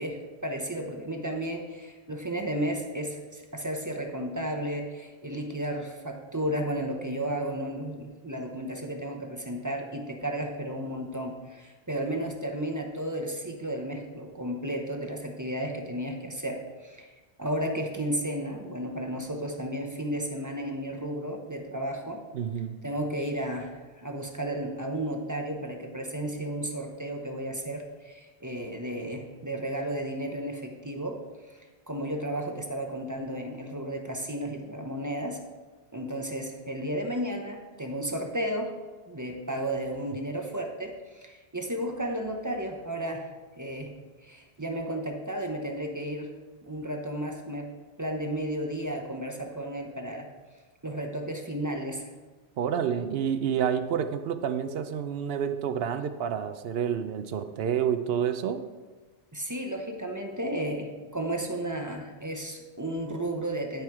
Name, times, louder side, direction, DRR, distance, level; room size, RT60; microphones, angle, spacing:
voice 1, 0.0-17.1 17.4-22.2 22.8-31.6 31.9-35.4 35.9-38.7 39.1-43.9 44.2-46.3 46.6-47.7 48.0-50.3 50.8-52.0 59.3-63.8, right 1 dB, 20° right, 2 dB, 0.7 m, -33 dB
voice 2, 22.3-22.8 52.6-58.6, right 8 dB, 70° right, 10 dB, 0.8 m, -29 dB
10.5 x 4.5 x 4.7 m, 1.3 s
omnidirectional pair, 1.1 m